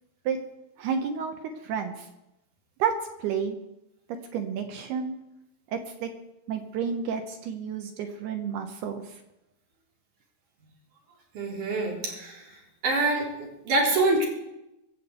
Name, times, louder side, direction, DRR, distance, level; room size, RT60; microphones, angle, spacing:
voice 1, 0.8-1.3 1.6-2.1 2.8-3.6 4.3-5.2 5.7-6.1 6.5-9.2, right 6 dB, 70° right, 5 dB, 2.7 m, -30 dB
voice 2, 11.3-12.4 12.8-14.3, right 2 dB, 45° right, -2 dB, 5.0 m, -25 dB
22.5 x 7.5 x 8.1 m, 0.92 s
omnidirectional pair, 5.4 m